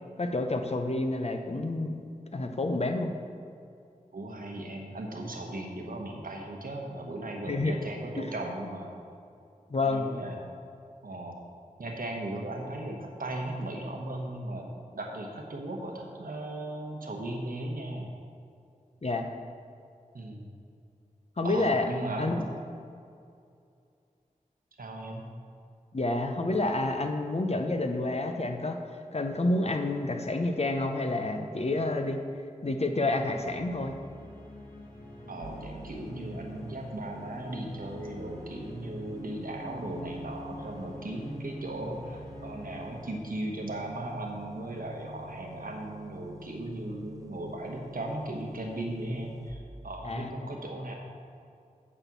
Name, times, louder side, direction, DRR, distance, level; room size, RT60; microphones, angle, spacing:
voice 1, 0.2-2.0 2.3-3.1 7.5-7.7 8.2-8.3 9.7-10.1 19.0-19.3 21.4-21.9 22.2-22.4 25.9-28.8 29.1-32.2 32.6-34.0 50.0-50.5, left 2 dB, 45° left, 5 dB, 0.8 m, -29 dB
voice 2, 4.1-8.9 9.9-10.4 11.0-11.4 11.8-18.1 20.1-20.5 21.4-22.3 24.8-25.3 35.3-50.9, right 1 dB, 80° right, 1 dB, 1.2 m, -37 dB
sound 1, 33.1-44.6, left 1 dB, 90° left, 1.6 m, -46 dB
sound 2, 35.4-49.5, right 2 dB, 25° right, 0.6 m, -48 dB
8.7 x 4.4 x 7.3 m, 2.4 s
wide cardioid pair, 55°, 14 cm